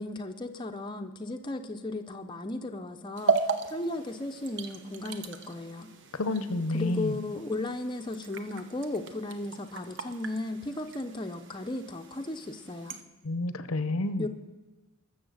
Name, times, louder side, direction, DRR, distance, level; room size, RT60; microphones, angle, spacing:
voice 1, 0.0-3.4 3.6-5.9 6.7-13.0 14.2-14.3, left 2 dB, 20° left, 4 dB, 0.6 m, -35 dB
sound 1, 3.2-13.0, right 4 dB, 55° right, 0.8 m, -36 dB
voice 2, 6.1-7.1 13.2-14.2, left 2 dB, 75° left, 12 dB, 0.7 m, -29 dB
20.5 x 7.1 x 6.4 m, 1.2 s
head